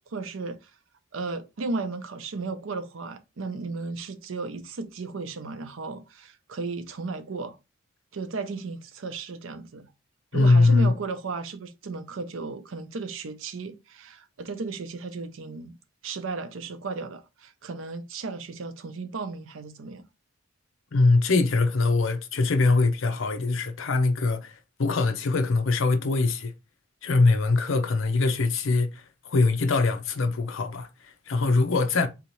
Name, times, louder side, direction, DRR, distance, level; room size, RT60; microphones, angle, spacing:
voice 1, 0.1-0.7 1.1-7.6 8.1-9.9 10.3-15.8 16.0-20.1, right 3 dB, 70° right, 0.5 m, -35 dB
voice 2, 10.3-11.0 20.9-26.5 27.0-32.1, left 3 dB, 70° left, 0.6 m, -22 dB
3.8 x 2.8 x 3.0 m
head